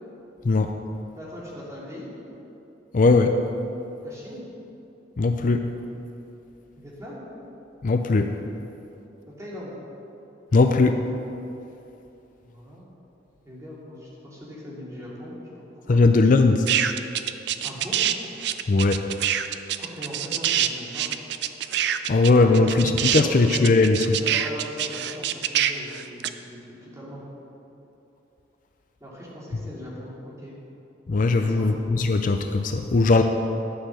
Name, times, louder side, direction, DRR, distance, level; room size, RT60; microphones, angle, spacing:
voice 1, 1.1-2.1 4.0-4.5 6.8-7.2 9.3-9.7 12.4-12.9 13.4-15.3 15.9-16.0 17.6-18.1 19.8-21.1 22.4-22.7 23.2-23.5 24.2-27.2 29.0-30.5 31.3-31.7, equal, 15° right, -6 dB, 2.6 m, -39 dB
voice 2, 2.9-3.4 5.2-5.6 7.8-8.3 10.5-11.0 15.9-16.7 18.7-19.0 22.1-24.2 31.1-33.2, left 3 dB, 45° left, 6 dB, 0.5 m, -19 dB
sound 1, 16.7-18.1 18.4-26.3, right 11 dB, 65° right, 0.5 m, -25 dB
12.0 x 6.7 x 6.3 m, 2.9 s
head